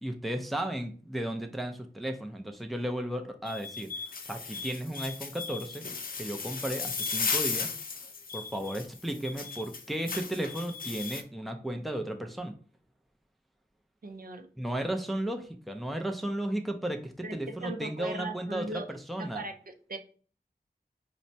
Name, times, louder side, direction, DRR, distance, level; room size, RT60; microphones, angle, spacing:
voice 1, 0.0-3.9 4.2-5.9 6.2-7.7 8.3-12.5 14.6-19.4, right 1 dB, ahead, 4 dB, 0.5 m, -34 dB
sound 1, 3.4-11.2, left 4 dB, 60° left, 0.4 m, -36 dB
voice 2, 14.0-14.5 17.2-18.9 19.2-20.0, right 2 dB, 60° right, 5 dB, 0.5 m, -38 dB
4.2 x 2.1 x 2.7 m, 0.42 s
cardioid pair, 45°, 17 cm